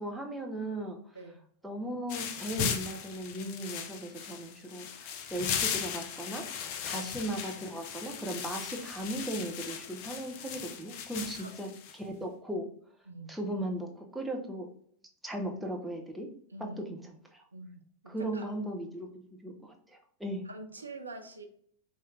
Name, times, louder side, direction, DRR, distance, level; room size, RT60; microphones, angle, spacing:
voice 1, 0.0-1.0 1.6-12.7 13.3-14.7 15.2-16.3 16.6-17.4 18.1-20.4, right 1 dB, 5° right, 1 dB, 0.7 m, -37 dB
voice 2, 1.1-1.5 6.9-7.1 11.3-11.5 13.1-13.3 16.5-17.0 17.5-18.4 20.4-21.5, right 2 dB, 80° right, 5 dB, 0.5 m, -45 dB
sound 1, 2.1-12.0, left 8 dB, 45° left, 0.4 m, -37 dB
4.4 x 3.1 x 2.4 m, 0.62 s
figure-of-eight pair, 90°, 0 cm